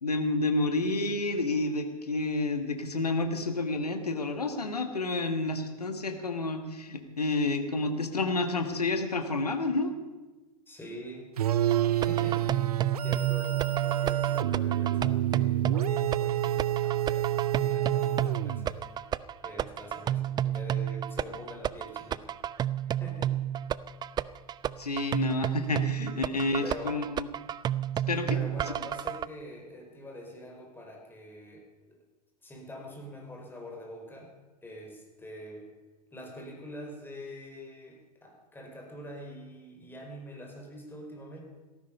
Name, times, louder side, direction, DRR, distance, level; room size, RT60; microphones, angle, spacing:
voice 1, 0.0-9.9 24.8-27.3 28.1-28.4, left 2 dB, 85° left, 7 dB, 1.7 m, -29 dB
voice 2, 10.7-11.3 11.9-19.0 19.4-22.4 22.8-23.3 26.6-27.0 28.3-32.0 32.4-34.3 34.6-35.7 36.1-41.5, equal, 10° left, 1 dB, 4.8 m, -45 dB
sound 1, 11.4-18.8, right 12 dB, 75° right, 0.4 m, -28 dB
sound 2, 11.7-29.3, right 11 dB, 20° right, 0.4 m, -31 dB
17.0 x 14.5 x 5.4 m, 1.2 s
figure-of-eight pair, 85°, 20 cm